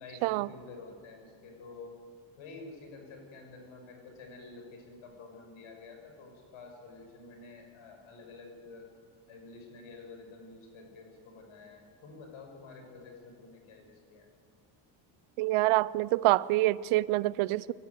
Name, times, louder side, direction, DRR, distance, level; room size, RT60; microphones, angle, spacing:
voice 1, 0.0-2.0 2.4-8.9 9.3-14.3, left 3 dB, 70° left, 6.0 m, -49 dB
voice 2, 15.4-17.7, right 18 dB, 80° right, 0.7 m, -26 dB
23.0 x 14.0 x 9.3 m
cardioid pair, 90°, 50 cm